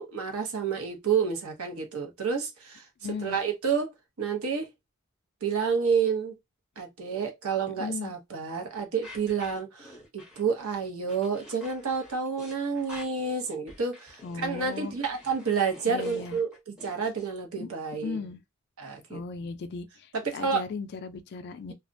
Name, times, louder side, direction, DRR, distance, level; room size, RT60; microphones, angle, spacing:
voice 1, 0.0-2.9 3.2-4.7 5.4-6.3 6.8-18.2 18.8-19.2 20.2-20.6, right 5 dB, 85° right, 0.8 m, -29 dB
voice 2, 3.0-3.4 7.8-8.1 14.2-14.9 15.9-16.4 17.6-17.7 18.0-18.4 19.1-21.7, left 4 dB, 50° left, 0.3 m, -36 dB
sound 1, 9.0-17.3, left 1 dB, 5° right, 0.8 m, -49 dB
2.3 x 2.1 x 2.5 m
head